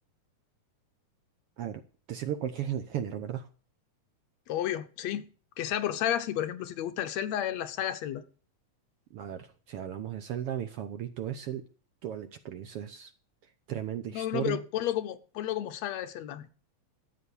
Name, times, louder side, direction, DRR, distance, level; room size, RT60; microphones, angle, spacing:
voice 1, 2.1-3.5 9.1-11.6 12.0-13.1 13.7-14.6, right 10 dB, 70° right, 1.5 m, -35 dB
voice 2, 4.5-5.3 5.6-8.2 14.1-16.5, left 11 dB, 70° left, 2.0 m, -32 dB
13.0 x 8.5 x 7.0 m
omnidirectional pair, 3.3 m